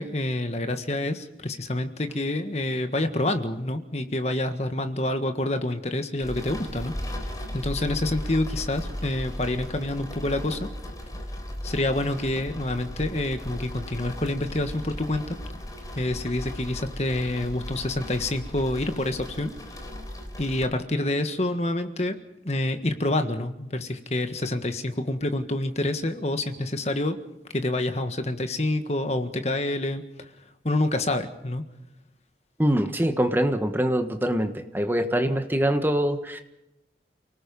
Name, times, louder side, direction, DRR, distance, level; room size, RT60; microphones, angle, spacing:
voice 1, 0.0-10.7 11.6-15.4 15.9-19.5 20.4-22.1 22.4-27.2 27.5-30.3 30.6-31.6, left 1 dB, 35° left, 8 dB, 1.6 m, -27 dB
sound 1, 6.2-20.7, equal, 20° left, 3.7 m, -36 dB
voice 2, 32.6-36.4, equal, 10° right, 6 dB, 1.3 m, -24 dB
29.5 x 18.5 x 5.4 m, 0.89 s
head